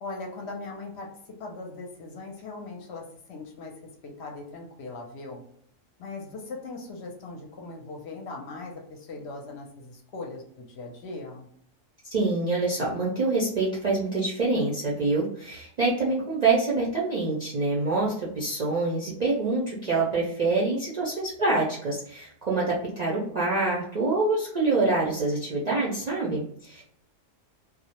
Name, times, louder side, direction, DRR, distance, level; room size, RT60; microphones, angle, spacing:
voice 1, 0.0-1.1 1.4-3.7 4.0-5.4 6.0-11.5, left 3 dB, 65° left, 1 dB, 0.7 m, -39 dB
voice 2, 12.1-26.8, right 3 dB, 55° right, -5 dB, 0.4 m, -26 dB
2.3 x 2.0 x 2.8 m, 0.66 s
omnidirectional pair, 1.3 m